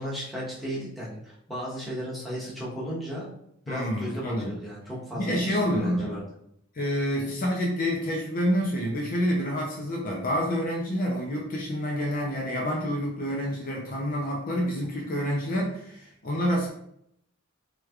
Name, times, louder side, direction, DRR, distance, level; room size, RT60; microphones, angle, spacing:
voice 1, 0.0-3.3 3.7-6.2, equal, ahead, -7 dB, 1.0 m, -35 dB
voice 2, 3.7-4.6 5.1-6.2 6.7-16.7, equal, 45° left, -1 dB, 0.5 m, -28 dB
3.2 x 3.1 x 2.3 m, 0.73 s
head